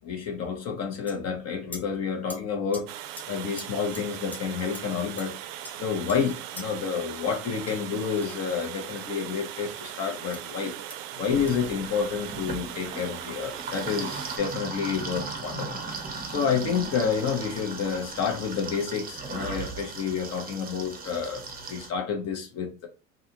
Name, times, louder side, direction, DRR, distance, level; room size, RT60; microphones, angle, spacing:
voice 1, 0.0-2.9 3.3-5.4 5.8-10.8 11.1-15.8 16.3-22.9, left 6 dB, 40° left, 0.9 m, -29 dB
sound 1, 1.1-1.2 1.7-1.8 2.3-2.4 2.7-2.8 3.2-3.3 3.6-3.7 3.9-4.0 4.3-4.4 4.7-4.8 5.2-5.3 5.6-6.2 6.6-6.7 7.7-9.0 10.3-10.4 10.9-11.0 11.5-11.6, left 1 dB, 5° left, 0.3 m, -43 dB
Water, 2.9-14.4, right 12 dB, 60° right, 0.5 m, -39 dB
sound 2, 11.3-21.9, right 4 dB, 20° right, 0.7 m, -37 dB
2.5 x 2.3 x 2.8 m
hypercardioid pair, 90°, 40 cm